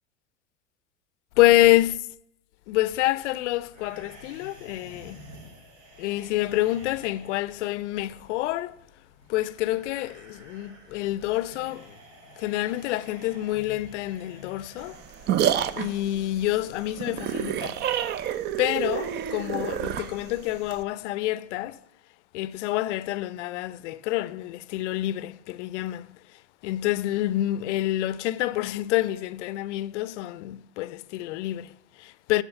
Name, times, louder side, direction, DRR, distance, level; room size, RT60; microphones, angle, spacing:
voice 1, 1.4-2.0 2.7-5.2 6.0-8.7 9.3-11.9 12.4-15.0 15.8-17.8 18.6-21.8 22.3-26.1 26.6-32.4, left 16 dB, 60° left, 0.6 m, -27 dB
sound 1, 3.7-16.7, equal, 65° right, 3.4 m, -50 dB
sound 2, 14.8-20.8, right 10 dB, 25° right, 0.5 m, -28 dB
9.4 x 4.9 x 6.7 m
hypercardioid pair, 105°, 40 cm